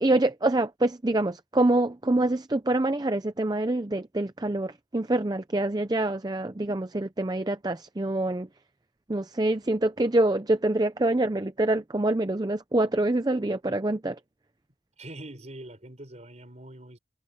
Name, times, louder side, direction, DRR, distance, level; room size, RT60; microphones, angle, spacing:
voice 1, 0.0-8.5 9.1-14.2, right 2 dB, 20° right, 0.6 m, -25 dB
voice 2, 15.0-17.0, right 1 dB, 40° right, 4.7 m, -43 dB
head